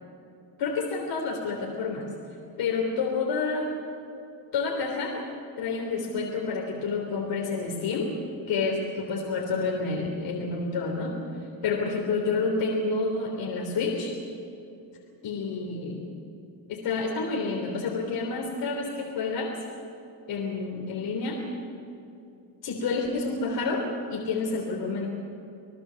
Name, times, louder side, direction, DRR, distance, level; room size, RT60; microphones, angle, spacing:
voice 1, 0.6-2.1 2.6-3.7 4.5-5.3 5.6-8.1 8.5-11.1 11.6-14.1 15.2-16.0 16.7-19.5 20.3-21.4 22.6-25.1, left 4 dB, 65° left, 0 dB, 3.5 m, -29 dB
27.0 x 18.5 x 7.1 m, 2.6 s
cardioid pair, 140°, 46 cm